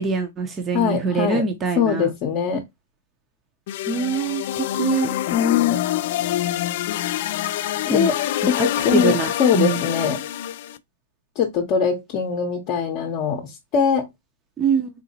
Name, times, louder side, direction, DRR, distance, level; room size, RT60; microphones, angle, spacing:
voice 1, 0.0-2.1 3.9-4.4 4.8-5.1 7.9-8.1 8.6-9.8 14.6-14.9, right 5 dB, 15° right, 0.6 m, -23 dB
voice 2, 0.7-1.4 1.8-2.6 5.3-5.8 7.9-8.2 8.5-9.1 9.4-10.2 11.4-14.1, left 7 dB, 35° left, 0.8 m, -22 dB
sound 1, 3.7-10.8, left 12 dB, 50° left, 0.3 m, -26 dB
3.9 x 2.8 x 2.7 m
hypercardioid pair, 145°, 0 cm